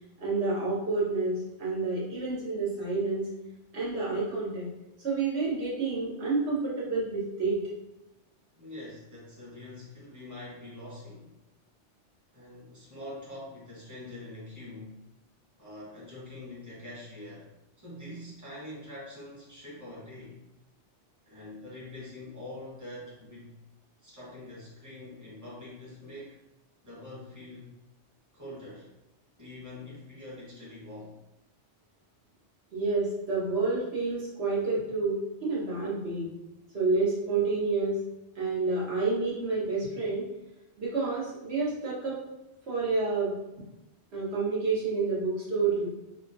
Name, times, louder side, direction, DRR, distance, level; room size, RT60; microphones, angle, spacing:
voice 1, 0.2-3.3 3.7-4.7 5.0-7.6 32.7-36.3 36.7-38.0 38.3-40.3 40.8-42.2 42.7-43.3 44.1-45.9, right 3 dB, 65° right, -6 dB, 1.3 m, -29 dB
voice 2, 8.6-11.3 12.3-15.0 15.6-20.4 21.3-23.6 24.0-26.4 26.8-27.8 28.3-28.9 29.4-31.2, left 1 dB, 15° right, -8 dB, 1.1 m, -44 dB
3.5 x 2.2 x 2.6 m, 0.97 s
omnidirectional pair, 1.2 m